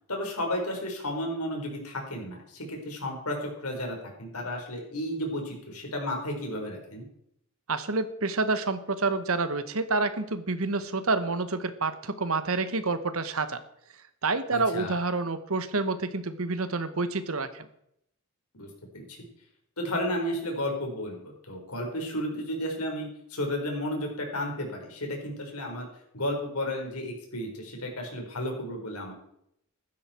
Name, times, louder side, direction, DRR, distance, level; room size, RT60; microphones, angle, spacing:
voice 1, 0.1-7.0 14.5-15.0 18.5-19.3 19.8-25.9 26.1-29.1, left 1 dB, 85° left, 1 dB, 4.6 m, -33 dB
voice 2, 7.7-13.6 14.2-17.6, right 3 dB, 70° right, 11 dB, 1.3 m, -28 dB
15.5 x 12.0 x 4.5 m, 0.74 s
head